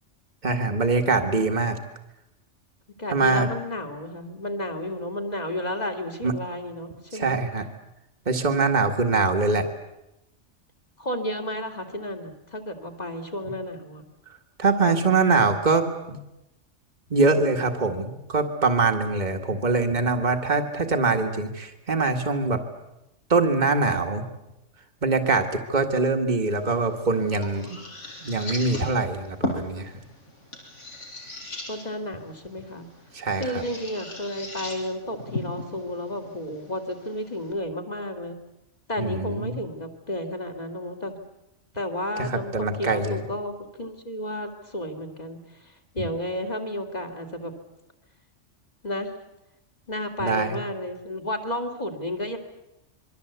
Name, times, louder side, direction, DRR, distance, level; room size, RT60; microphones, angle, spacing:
voice 1, 0.4-1.8 3.1-3.5 6.2-6.3 7.1-7.7 8.3-9.6 14.6-16.2 17.1-22.6 23.3-24.2 25.0-27.8 28.2-29.9 33.1-33.6 39.0-39.6 42.2-43.2 46.0-46.1 50.2-50.6, right 3 dB, 35° right, 4 dB, 2.0 m, -23 dB
voice 2, 3.0-7.4 11.0-14.1 31.7-32.9 33.4-38.4 38.9-41.2 41.7-47.5 48.8-49.1 49.9-52.4, left 1 dB, 35° left, 5 dB, 2.9 m, -32 dB
sound 1, 26.6-37.5, left 2 dB, 75° left, 5.5 m, -38 dB
27.0 x 23.0 x 8.2 m, 0.92 s
omnidirectional pair, 1.3 m